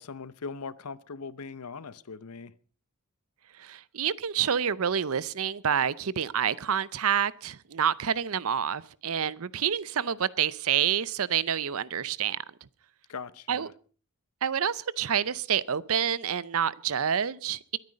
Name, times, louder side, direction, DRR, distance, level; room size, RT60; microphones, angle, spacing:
voice 1, 0.0-2.5 13.1-13.7, left 4 dB, 85° left, 0.8 m, -40 dB
voice 2, 3.6-12.4 13.5-13.7 14.4-17.8, right 8 dB, 70° right, 0.6 m, -28 dB
22.0 x 9.5 x 5.2 m
head